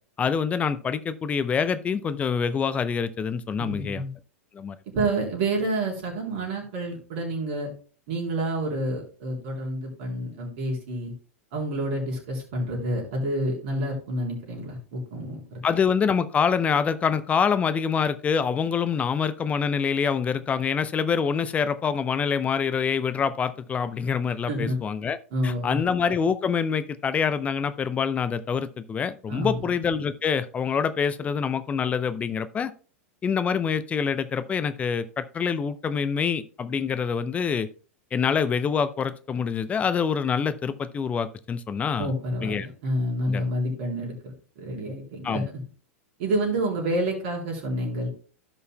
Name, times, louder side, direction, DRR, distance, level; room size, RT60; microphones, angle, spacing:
voice 1, 0.2-4.0 4.5-4.8 15.6-25.2 25.4-32.7 33.2-37.7 38.1-42.1 42.4-42.7 43.3-43.4 45.2-45.5, left 6 dB, 20° left, 13 dB, 0.6 m, -26 dB
voice 2, 3.6-4.1 4.9-7.7 8.1-11.1 11.5-15.6 24.5-24.8 25.3-25.8 29.3-29.7 42.0-45.4 46.2-48.1, right 1 dB, 50° right, -1 dB, 3.7 m, -28 dB
16.0 x 5.6 x 2.2 m, 0.39 s
figure-of-eight pair, 95°, 7 cm